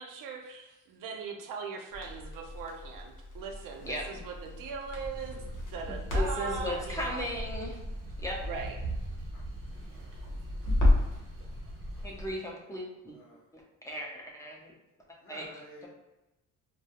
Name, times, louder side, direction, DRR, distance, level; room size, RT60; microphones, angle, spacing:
voice 1, 0.0-7.3 8.4-8.8, right 5 dB, 90° right, 3 dB, 0.5 m, -40 dB
Crackle, 1.9-11.2, left 1 dB, 70° left, 0.8 m, -33 dB
voice 2, 3.7-4.2 5.6-5.8 8.2-8.4 9.3-9.6 11.9-12.3 13.0-13.5 15.2-15.9, equal, 40° left, -3 dB, 0.7 m, -53 dB
sound 1, 4.9-12.3, right 1 dB, 45° right, 0.6 m, -40 dB
voice 3, 6.1-7.8 8.2-8.4 12.0-13.2 13.5-14.7 15.3-15.5, equal, 10° left, -2 dB, 0.4 m, -36 dB
2.3 x 2.1 x 2.8 m, 1.0 s
cardioid pair, 135°, 32 cm